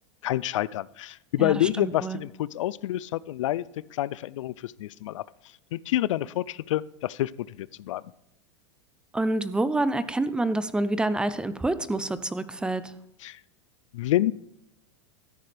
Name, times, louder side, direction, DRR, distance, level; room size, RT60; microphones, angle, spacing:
voice 1, 0.2-5.2 5.7-8.0 13.2-13.4 13.9-14.3, left 14 dB, 85° left, 21 dB, 0.4 m, -28 dB
voice 2, 1.4-2.2 9.1-12.9, right 2 dB, 5° right, 14 dB, 0.4 m, -27 dB
13.0 x 9.9 x 3.4 m, 0.85 s
supercardioid pair, 140°, 16 cm